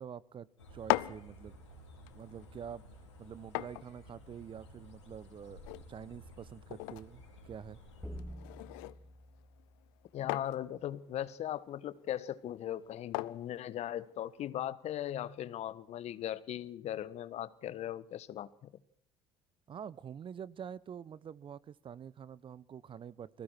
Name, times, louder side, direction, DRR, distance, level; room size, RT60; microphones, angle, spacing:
voice 1, 0.0-1.5 2.1-2.8 3.2-7.8 19.7-23.4, right 8 dB, 35° right, 21 dB, 0.9 m, -46 dB
sound 1, 0.6-8.2, equal, 85° left, 6.3 m, -54 dB
sound 2, 0.6-14.5, left 22 dB, 65° left, 0.8 m, -42 dB
sound 3, 8.0-10.5, equal, ahead, 1.7 m, -48 dB
voice 2, 10.1-18.7, left 11 dB, 50° left, 17 dB, 1.4 m, -39 dB
30.0 x 20.5 x 4.5 m, 0.64 s
figure-of-eight pair, 55°, 14 cm